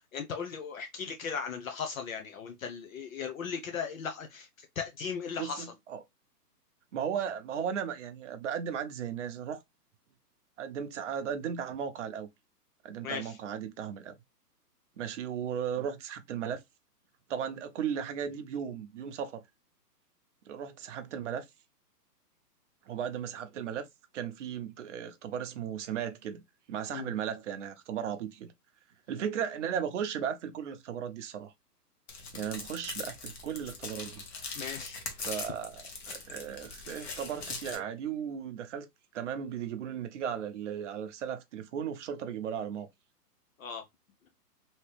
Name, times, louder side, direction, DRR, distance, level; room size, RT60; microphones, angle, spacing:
voice 1, 0.1-5.7 13.0-13.4 26.9-27.1 34.5-35.0 43.6-43.8, left 6 dB, 55° left, 0.7 m, -37 dB
voice 2, 5.4-6.0 6.9-9.6 10.6-12.3 12.8-14.2 15.0-16.6 17.3-19.4 20.5-21.4 22.9-23.9 24.1-26.4 26.7-28.5 29.1-31.5 32.3-34.2 35.2-38.9 39.1-42.9, right 8 dB, 50° right, 0.7 m, -36 dB
sound 1, 32.1-37.8, left 4 dB, 40° left, 1.1 m, -41 dB
3.0 x 2.8 x 3.2 m
hypercardioid pair, 145°, 48 cm